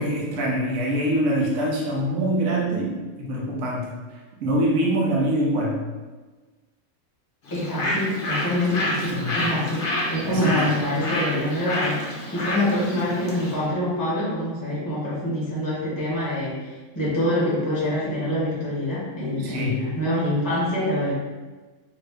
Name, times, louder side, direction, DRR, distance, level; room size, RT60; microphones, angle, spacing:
voice 1, 0.0-5.8 9.1-9.4 10.2-10.6 19.4-19.8, right 1 dB, 65° right, -3 dB, 1.0 m, -24 dB
Bird, 7.5-13.6, left 1 dB, 50° left, 0.7 m, -29 dB
voice 2, 7.5-21.1, left 1 dB, 15° left, -8 dB, 0.9 m, -25 dB
2.9 x 2.6 x 3.3 m, 1.3 s
omnidirectional pair, 1.4 m